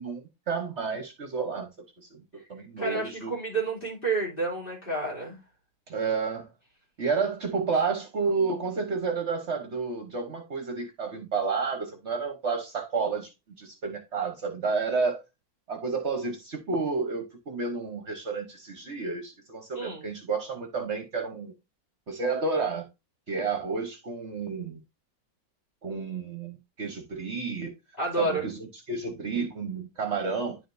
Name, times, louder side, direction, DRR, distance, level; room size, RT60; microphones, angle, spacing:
voice 1, 0.0-1.7 2.0-3.3 5.9-6.5 7.0-13.3 13.6-15.2 15.7-21.5 22.1-22.9 23.3-24.8 25.8-27.7 28.2-30.6, right 4 dB, 50° right, 1.2 m, -31 dB
voice 2, 2.8-5.4 19.7-20.1 28.0-28.5, right 3 dB, 35° left, 3.2 m, -30 dB
10.0 x 5.0 x 2.6 m
omnidirectional pair, 1.6 m